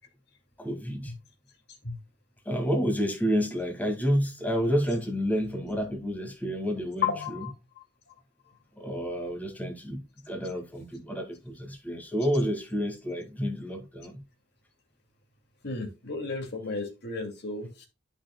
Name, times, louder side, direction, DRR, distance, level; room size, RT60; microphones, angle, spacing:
voice 1, 0.6-1.1 2.5-7.5 8.8-14.2, equal, 10° left, 2.1 m, -29 dB
voice 2, 7.0-7.5 15.6-17.9, left 5 dB, 60° left, 2.5 m, -33 dB
12.0 x 6.0 x 2.2 m
head